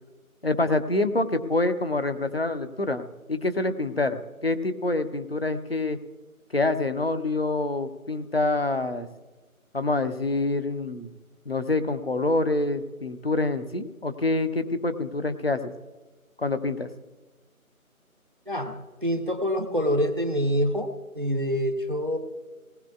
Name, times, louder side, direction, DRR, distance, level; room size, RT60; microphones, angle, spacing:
voice 1, 0.4-6.0 6.5-9.1 9.7-11.1 11.5-15.7 16.4-16.9, left 2 dB, 45° left, 10 dB, 0.7 m, -26 dB
voice 2, 18.5-22.2, equal, 35° right, 8 dB, 0.7 m, -26 dB
19.0 x 16.5 x 2.4 m, 1.2 s
figure-of-eight pair, 165°, 43 cm